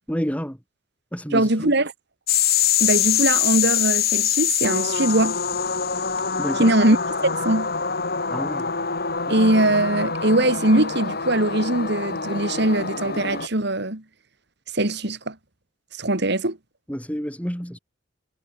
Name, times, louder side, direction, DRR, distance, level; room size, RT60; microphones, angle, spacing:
voice 1, 0.1-0.6 1.1-1.7 6.4-6.7 8.3-8.7 9.3-9.4 9.6-9.7 16.9-17.8, equal, 5° left, 7.9 m, -29 dB
voice 2, 1.3-1.9 2.8-5.4 6.6-7.0 7.2-7.7 9.3-14.0 14.7-15.3 16.0-16.6, right 1 dB, 60° right, 3.1 m, -21 dB
sound 1, 2.3-13.5, left 7 dB, 55° left, 5.6 m, -24 dB
head